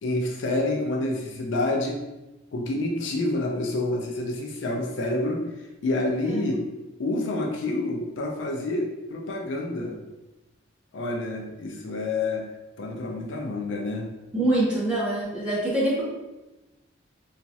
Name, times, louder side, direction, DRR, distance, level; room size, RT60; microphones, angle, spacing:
voice 1, 0.0-2.0 2.5-5.4 5.8-6.6 7.0-10.0 10.9-12.4 12.8-14.1, left 2 dB, 70° left, 1 dB, 0.4 m, -28 dB
voice 2, 14.3-16.0, right 1 dB, 5° right, -9 dB, 1.0 m, -24 dB
3.0 x 2.4 x 2.7 m, 1.0 s
head